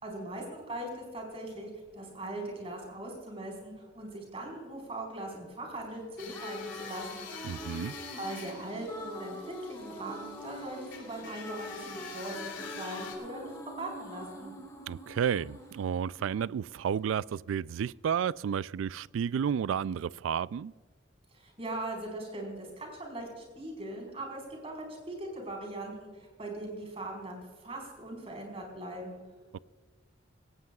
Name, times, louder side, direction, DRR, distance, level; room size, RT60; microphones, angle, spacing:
voice 1, 0.0-7.3 8.2-14.5 21.3-29.2, right 1 dB, 30° right, 4.6 m, -40 dB
sound 1, 6.0-17.0, left 1 dB, 15° left, 2.5 m, -44 dB
sound 2, 6.2-13.2, left 6 dB, 70° left, 2.9 m, -46 dB
voice 2, 7.4-7.9 14.9-20.7 29.5-29.6, right 8 dB, 85° right, 0.3 m, -31 dB
19.0 x 17.0 x 2.4 m
head